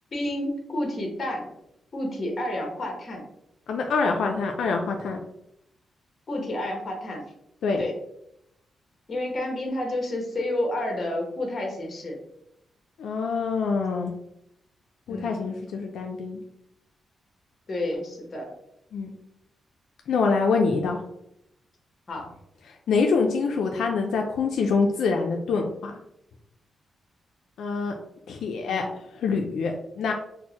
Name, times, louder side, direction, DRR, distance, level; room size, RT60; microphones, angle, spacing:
voice 1, 0.1-1.5 1.9-3.2 6.3-7.2 7.8-7.9 9.1-12.2 15.1-15.5 17.7-18.5 22.1-22.3 28.7-28.9, left 1 dB, 35° left, 1 dB, 0.9 m, -30 dB
voice 2, 3.7-5.2 7.6-7.8 13.0-14.1 15.1-16.4 18.9-19.1 20.1-21.0 22.9-26.0 27.6-27.9 28.3-28.9 29.1-30.1, left 4 dB, 75° left, 2 dB, 0.3 m, -25 dB
4.3 x 2.0 x 2.8 m, 0.80 s
wide cardioid pair, 140°, 0 cm